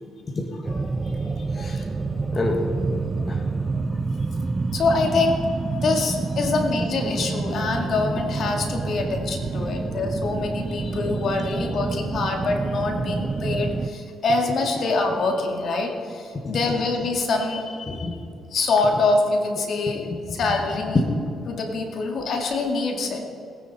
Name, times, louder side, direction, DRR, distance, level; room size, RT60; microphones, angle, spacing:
sound 1, 0.6-13.9, right 3 dB, 30° right, 0.6 m, -28 dB
voice 1, 0.9-1.9 2.1-2.3 3.3-3.4 3.9-4.0 4.7-5.5 5.8-18.2 18.5-21.0 21.5-23.2, left 3 dB, 60° left, 2 dB, 2.2 m, -25 dB
voice 2, 2.3-3.4 11.0-11.1 17.9-18.1 20.9-21.0, left 2 dB, 30° left, 1 dB, 1.7 m, -27 dB
21.0 x 9.8 x 4.2 m, 2.4 s
cardioid pair, 90°, 0 cm